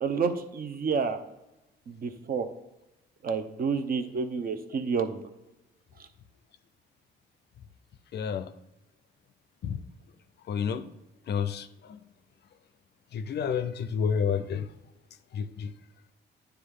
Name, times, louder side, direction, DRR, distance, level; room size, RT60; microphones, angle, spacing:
voice 1, 0.0-1.2 1.9-2.5 3.2-5.2 6.0-6.1, right 5 dB, 50° right, 8 dB, 0.7 m, -29 dB
voice 2, 8.1-8.5 9.6-9.8 10.5-10.9 11.3-12.0 13.1-14.7 15.3-15.7, left 7 dB, 55° left, 12 dB, 0.5 m, -30 dB
9.5 x 3.5 x 3.7 m, 0.95 s
cardioid pair, 90°, 20 cm